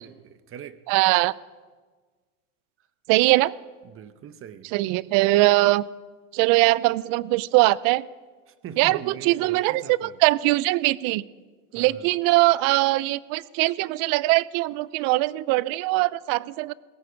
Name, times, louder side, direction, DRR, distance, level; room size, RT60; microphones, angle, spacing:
voice 1, 0.0-0.8 3.8-4.7 8.5-10.2 11.7-12.1, right 9 dB, 30° right, 0.8 m, -42 dB
voice 2, 0.9-1.3 3.1-3.5 4.7-5.8 6.3-8.0 8.8-11.2 11.7-16.7, right 19 dB, 50° right, 0.5 m, -21 dB
17.0 x 15.0 x 5.0 m
supercardioid pair, 120°, 43 cm